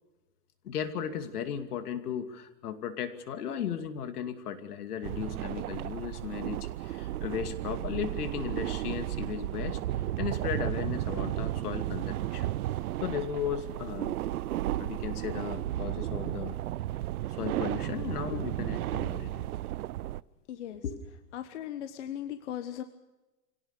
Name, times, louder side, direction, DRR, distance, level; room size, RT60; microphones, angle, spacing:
voice 1, 0.6-9.8 10.2-12.5 13.0-14.2 14.8-16.6 17.4-19.5 20.7-21.0, left 8 dB, 70° left, 8 dB, 2.7 m, -36 dB
sound 1, 5.0-20.2, right 14 dB, 65° right, 0.6 m, -33 dB
voice 2, 20.5-20.8 21.3-22.8, left 11 dB, 45° left, 9 dB, 1.2 m, -38 dB
25.0 x 17.5 x 6.7 m, 1.1 s
supercardioid pair, 175°, 48 cm